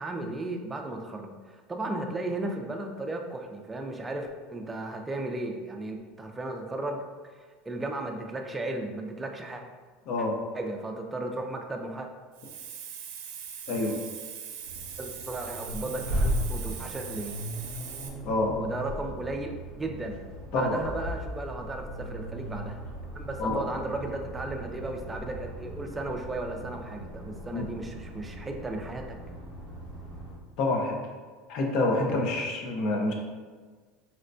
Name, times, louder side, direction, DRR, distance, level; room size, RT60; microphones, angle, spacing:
voice 1, 0.0-7.0 7.7-9.6 10.2-10.3 10.5-12.1 15.0-17.4 18.5-20.2 20.5-22.8 23.2-29.2, right 2 dB, 15° right, 3 dB, 0.3 m, -35 dB
Hiss, 12.3-18.1, right 8 dB, 75° right, 0.5 m, -41 dB
Accelerating revving vroom, 14.6-30.3, equal, 80° left, 1.2 m, -37 dB
voice 2, 30.6-31.0 31.5-33.1, left 2 dB, 55° left, 1 dB, 0.6 m, -27 dB
4.2 x 2.1 x 2.5 m, 1.5 s
supercardioid pair, 130°, 0 cm